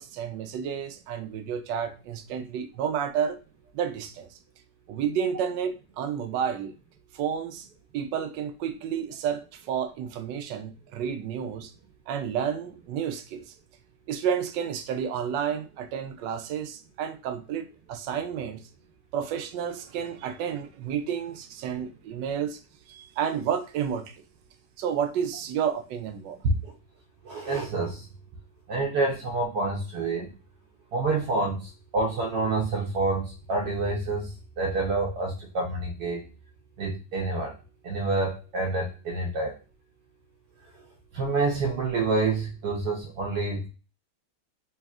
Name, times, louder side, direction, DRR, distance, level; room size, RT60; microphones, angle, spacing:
voice 1, 0.0-3.4 3.7-4.4 4.9-6.7 7.1-7.7 7.9-11.7 12.1-13.5 14.1-18.6 19.1-22.6 22.9-24.2 24.8-26.4, right 8 dB, 85° right, 8 dB, 1.3 m, -31 dB
voice 2, 27.2-28.1 28.7-30.3 30.9-34.3 34.6-36.2 36.8-37.5 37.8-39.5 41.1-43.7, right 3 dB, 70° right, 0 dB, 1.2 m, -27 dB
4.2 x 3.3 x 2.4 m, 0.33 s
omnidirectional pair, 1.9 m